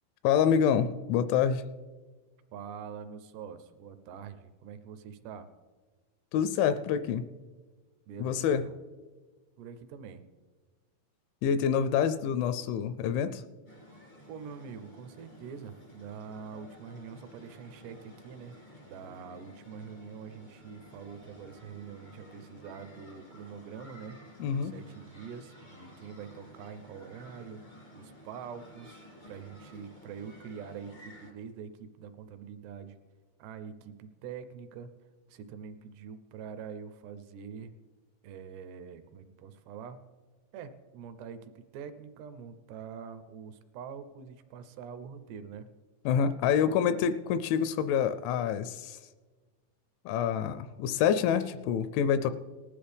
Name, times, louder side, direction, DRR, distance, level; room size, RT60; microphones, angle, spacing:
voice 1, 0.2-1.6 6.3-7.3 8.2-8.6 11.4-13.4 24.4-24.8 46.1-49.0 50.1-52.3, left 8 dB, 85° left, 12 dB, 2.8 m, -27 dB
voice 2, 2.5-5.5 8.1-8.8 9.6-10.2 14.3-18.6 18.8-33.0 33.4-34.9 35.3-37.7 38.2-40.0 40.5-45.7, right 7 dB, 80° right, 11 dB, 2.5 m, -45 dB
sound 1, 13.6-31.3, equal, 50° left, 0.5 m, -53 dB
19.0 x 13.0 x 3.4 m, 1.4 s
omnidirectional pair, 5.4 m